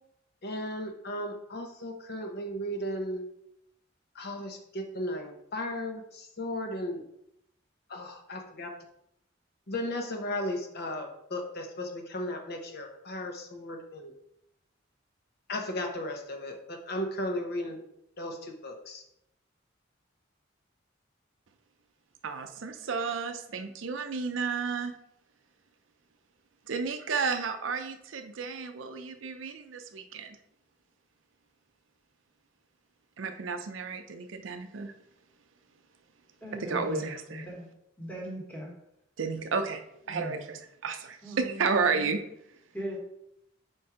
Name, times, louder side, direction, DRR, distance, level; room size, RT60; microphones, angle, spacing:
voice 1, 0.4-3.2 4.1-7.0 7.9-8.7 9.7-14.1 15.5-17.8 18.2-19.0, left 1 dB, 55° left, 3 dB, 0.9 m, -35 dB
voice 2, 22.2-25.0 26.7-30.4 33.2-34.9 36.6-37.5 39.2-39.8 40.1-42.2, right 5 dB, 80° right, 6 dB, 0.6 m, -32 dB
voice 3, 36.4-37.7 38.0-38.7 40.1-40.4 41.2-42.1 42.7-43.0, right 1 dB, 10° left, -2 dB, 1.3 m, -39 dB
4.6 x 4.3 x 4.8 m, 0.78 s
head